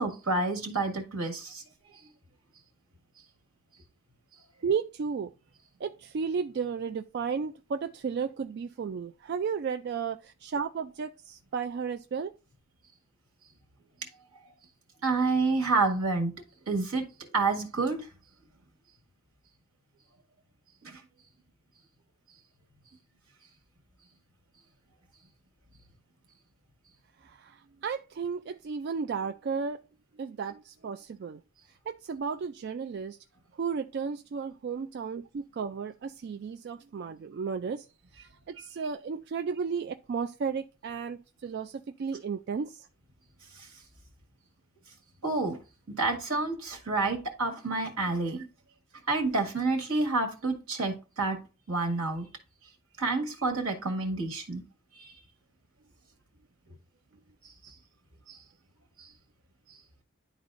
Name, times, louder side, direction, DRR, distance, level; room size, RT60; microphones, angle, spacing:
voice 1, 0.0-1.6 15.0-16.3 16.7-18.1 20.8-21.0 43.5-43.7 45.2-45.6 45.9-48.4 49.1-51.4 51.7-52.3 53.0-54.6 54.9-55.1 57.4-57.7 58.3-58.4 59.0-59.1, right 3 dB, 80° right, 1.8 m, -29 dB
voice 2, 4.6-5.3 5.8-12.3 27.2-29.8 30.2-31.4 31.9-33.2 33.6-37.9 38.1-42.9, right 6 dB, 50° right, 0.3 m, -34 dB
11.0 x 4.0 x 2.5 m
head